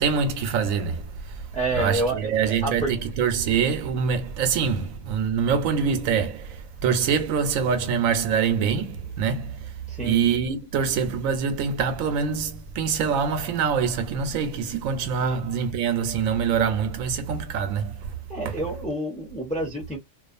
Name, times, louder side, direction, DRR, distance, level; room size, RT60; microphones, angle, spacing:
voice 1, 0.0-1.5 1.7-9.7 10.0-18.2 18.4-18.5, right 6 dB, 85° right, 1.0 m, -25 dB
voice 2, 1.5-2.9 9.9-10.2 15.2-15.4 18.3-20.0, right 2 dB, 10° left, 0.6 m, -28 dB
2.5 x 2.3 x 2.4 m
omnidirectional pair, 1.4 m